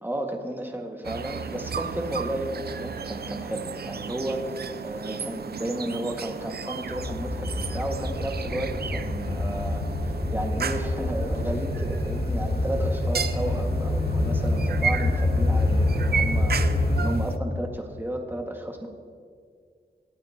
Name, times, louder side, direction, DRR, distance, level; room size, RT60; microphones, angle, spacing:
voice 1, 0.0-9.8 10.3-16.7 17.0-18.9, right 1 dB, 10° right, 1 dB, 1.9 m, -33 dB
sound 1, 1.0-17.4, right 6 dB, 60° right, 0.6 m, -34 dB
sound 2, 6.9-17.1, left 2 dB, 65° left, 2.9 m, -26 dB
24.5 x 8.9 x 2.9 m, 2.1 s
cardioid pair, 55°, 18 cm